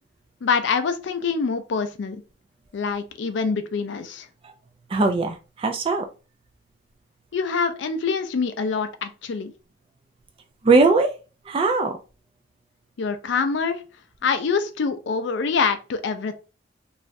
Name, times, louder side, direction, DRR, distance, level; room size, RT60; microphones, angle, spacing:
voice 1, 0.4-2.2 2.7-4.3 7.3-9.5 13.0-13.8 14.2-16.4, left 5 dB, 65° left, 0.4 m, -25 dB
voice 2, 4.9-6.1 10.6-11.1 11.5-12.0, right 3 dB, 30° right, 0.3 m, -20 dB
3.1 x 2.3 x 2.5 m
head